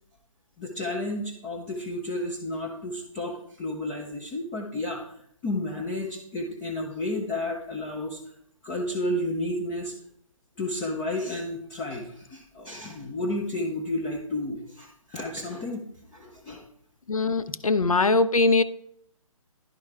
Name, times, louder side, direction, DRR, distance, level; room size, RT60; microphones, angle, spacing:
voice 1, 0.6-5.0 5.4-8.2 8.6-9.9 10.6-15.8 16.1-16.6, left 1 dB, 10° left, 0.4 m, -31 dB
voice 2, 17.1-18.6, left 3 dB, 90° left, 0.5 m, -21 dB
10.5 x 4.6 x 3.3 m
figure-of-eight pair, 145°, 17 cm